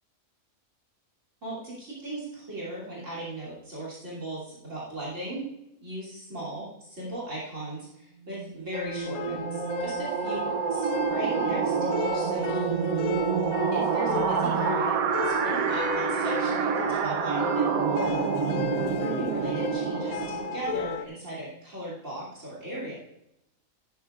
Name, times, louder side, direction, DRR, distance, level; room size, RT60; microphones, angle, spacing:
voice 1, 1.4-5.5 5.8-12.7 13.7-18.4 18.7-22.9, right 1 dB, 60° right, -5 dB, 3.2 m, -38 dB
sound 1, 8.3-20.9, right 6 dB, 85° right, 1.2 m, -28 dB
sound 2, 8.7-21.1, left 7 dB, 85° left, 1.1 m, -35 dB
12.0 x 9.3 x 2.4 m, 0.82 s
omnidirectional pair, 1.4 m